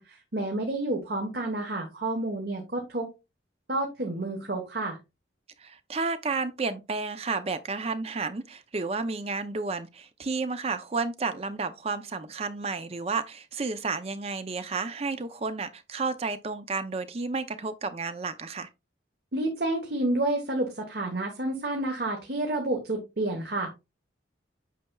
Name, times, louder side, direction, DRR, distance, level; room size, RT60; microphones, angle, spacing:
voice 1, 0.0-3.1 3.7-5.0 19.3-23.7, right 2 dB, 55° right, 1.2 m, -30 dB
voice 2, 5.6-18.7, right 4 dB, 35° right, 0.5 m, -31 dB
8.4 x 5.6 x 2.3 m
head